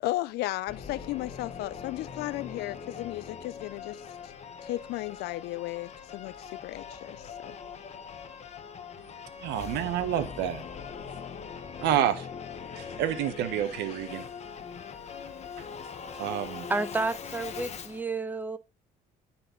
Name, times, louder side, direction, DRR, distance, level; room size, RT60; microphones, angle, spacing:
voice 1, 0.0-4.3 4.6-7.6, left 17 dB, 80° left, 0.4 m, -35 dB
Singing / Musical instrument, 0.7-18.0, left 6 dB, 40° left, 1.0 m, -41 dB
voice 2, 9.4-10.6 11.8-12.3 12.8-14.2 16.2-16.7, right 11 dB, 85° right, 1.0 m, -29 dB
voice 3, 16.7-18.6, right 3 dB, 10° right, 0.7 m, -31 dB
9.9 x 4.3 x 3.8 m
cardioid pair, 110°, 17 cm